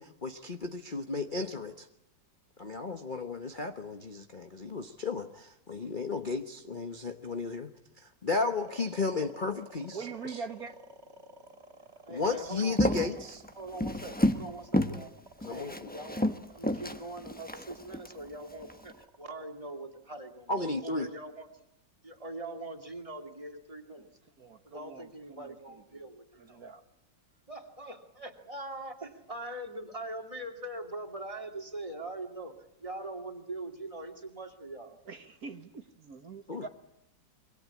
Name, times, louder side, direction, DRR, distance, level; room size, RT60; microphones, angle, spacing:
voice 1, 0.0-1.9 2.6-7.7 8.0-10.4 12.1-13.4 15.4-15.9 20.5-21.1 36.5-36.7, left 3 dB, 30° left, 4 dB, 1.0 m, -34 dB
sound 1, 8.4-20.6, equal, 35° right, 3.3 m, -53 dB
voice 2, 9.9-10.8 24.4-25.6 26.4-26.8 35.1-36.7, right 5 dB, 50° right, 7 dB, 1.8 m, -43 dB
voice 3, 12.0-13.1 13.5-15.1 15.4-21.6 22.0-24.1 24.6-26.6 27.5-32.5 32.8-35.0, right 2 dB, 15° right, 4 dB, 2.7 m, -42 dB
Walk footsteps, 12.6-14.5 14.7-15.0 15.4-18.1 18.6-18.9, left 1 dB, 5° left, 0.9 m, -30 dB
27.0 x 24.0 x 8.4 m, 0.82 s
omnidirectional pair, 2.0 m